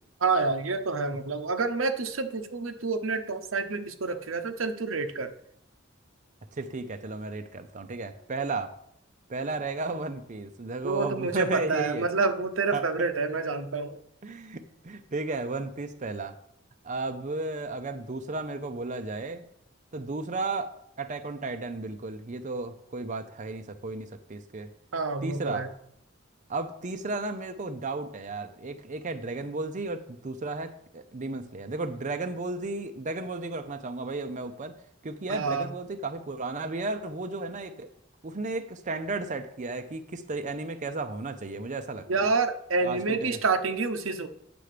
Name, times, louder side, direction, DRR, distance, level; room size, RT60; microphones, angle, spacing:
voice 1, 0.2-5.3 10.8-14.0 24.9-25.7 35.3-35.7 42.1-44.3, right 4 dB, 90° right, 7 dB, 0.9 m, -28 dB
voice 2, 6.6-8.7 9.3-12.1 12.7-12.9 14.2-16.3 16.8-19.5 19.9-20.7 21.0-24.7 25.2-25.7 26.5-34.8 35.0-37.9 38.2-42.3 42.8-43.4, right 3 dB, 40° right, 7 dB, 0.6 m, -34 dB
9.4 x 6.9 x 5.0 m, 0.74 s
head